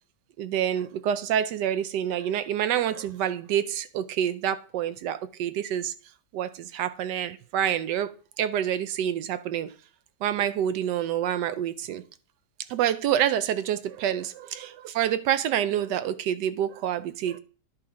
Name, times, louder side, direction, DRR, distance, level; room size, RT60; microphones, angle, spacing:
voice 1, 0.4-5.9 6.3-8.1 8.4-9.7 10.2-12.0 12.7-17.4, right 10 dB, 80° right, 1.2 m, -27 dB
10.5 x 4.9 x 3.6 m
omnidirectional pair, 1.8 m